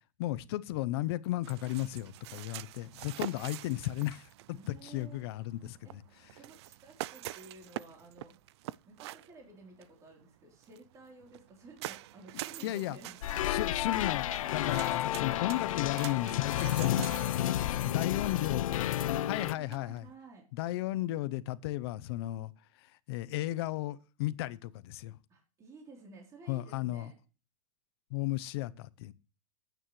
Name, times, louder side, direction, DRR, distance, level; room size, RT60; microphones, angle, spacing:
voice 1, 0.2-6.0 12.6-13.0 13.4-17.1 17.9-18.7 19.3-20.1 20.5-22.5 23.1-25.2 26.5-27.1 28.1-29.1, left 16 dB, 50° left, 0.7 m, -34 dB
sound 1, 1.4-20.2, right 15 dB, 55° right, 0.4 m, -46 dB
voice 2, 4.5-5.2 5.8-8.4 8.9-13.2 14.2-14.6 16.6-17.3 17.8-20.4 25.3-27.2, right 3 dB, 20° right, 3.6 m, -53 dB
sound 2, 13.2-19.6, left 12 dB, 85° left, 0.6 m, -31 dB
15.0 x 9.2 x 3.2 m
supercardioid pair, 160°, 17 cm